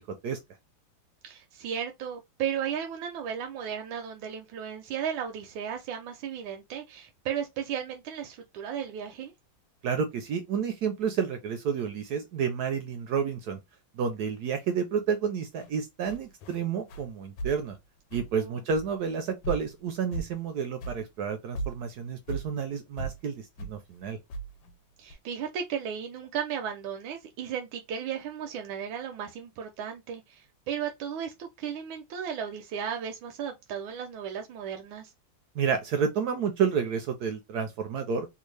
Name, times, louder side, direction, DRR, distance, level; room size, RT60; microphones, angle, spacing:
voice 1, 1.2-9.3 18.3-18.6 25.0-35.1, right 8 dB, 90° right, 1.4 m, -35 dB
voice 2, 9.8-13.6 14.0-17.8 18.1-24.2 35.6-38.3, right 6 dB, 75° right, 0.9 m, -30 dB
sound 1, 15.6-15.7 16.0-16.6 16.9-17.1 17.4-17.7 18.1-18.4 18.7-19.1 19.4-19.8 20.1-20.5 20.8-21.0 21.3-21.4 21.5-22.5 23.0-23.2 23.6-23.8 24.3-24.7 25.1-25.2, right 3 dB, 85° left, 1.4 m, -36 dB
3.5 x 2.3 x 3.2 m
omnidirectional pair, 2.1 m